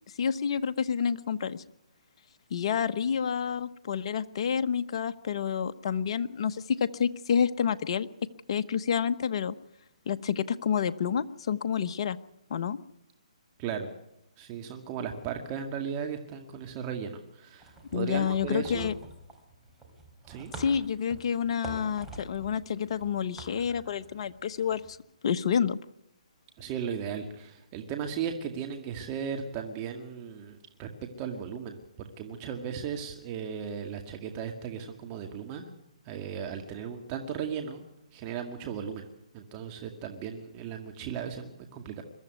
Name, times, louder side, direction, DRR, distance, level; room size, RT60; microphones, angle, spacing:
voice 1, 0.2-1.6 2.5-8.1 8.5-9.5 10.1-12.2 12.5-12.8 17.9-18.9 20.5-24.8 25.2-25.8, left 7 dB, 50° left, 10 dB, 1.1 m, -29 dB
voice 2, 14.4-18.9 20.3-20.5 26.6-35.7 36.1-37.8 38.1-39.1 39.3-42.0, right 7 dB, 30° right, 4 dB, 2.1 m, -36 dB
sound 1, 17.6-24.9, right 2 dB, 5° right, 4.0 m, -46 dB
22.5 x 13.5 x 9.5 m, 0.80 s
hypercardioid pair, 145°, 4 cm